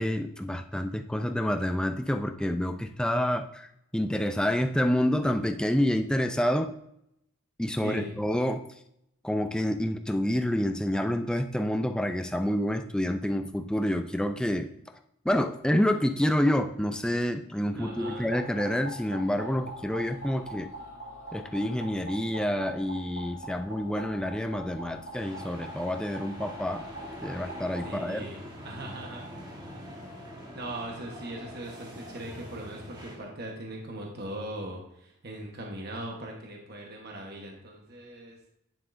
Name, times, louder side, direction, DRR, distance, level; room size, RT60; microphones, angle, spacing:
voice 1, 0.0-6.7 7.6-8.6 9.2-14.7 15.2-20.7 21.3-26.9 27.2-28.3, left 1 dB, 5° left, 7 dB, 0.3 m, -28 dB
voice 2, 7.8-8.2 17.7-18.3 27.8-29.2 30.5-38.4, right 1 dB, 45° right, 0 dB, 1.1 m, -39 dB
sound 1, 17.8-27.9, equal, 80° left, 1.6 m, -43 dB
sound 2, 25.1-33.2, equal, 20° right, 1.2 m, -44 dB
9.1 x 7.3 x 2.6 m, 0.77 s
head